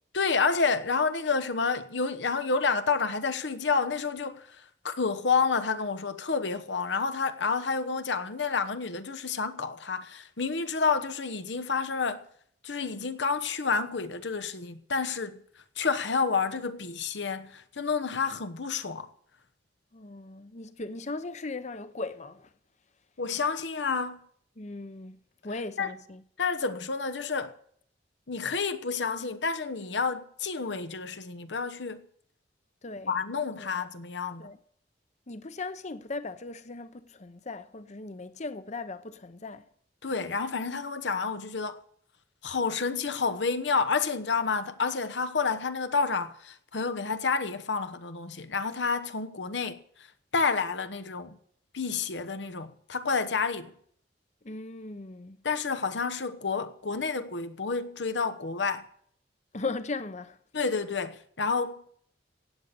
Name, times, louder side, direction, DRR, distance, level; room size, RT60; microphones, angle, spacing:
voice 1, 0.1-4.6 4.8-12.2 12.6-15.4 15.8-19.1 23.2-24.2 25.8-25.9 26.4-27.5 28.3-32.0 33.1-34.5 40.0-41.8 42.4-49.8 50.3-51.4 51.7-53.7 55.4-58.8 60.5-61.9, left 4 dB, 75° left, 1.0 m, -29 dB
voice 2, 19.9-22.5 24.6-25.2 25.4-26.2 32.8-33.1 33.6-33.8 34.4-34.6 35.3-39.6 54.4-55.4 59.5-60.4, left 3 dB, 40° left, 0.8 m, -38 dB
16.5 x 8.8 x 6.8 m
head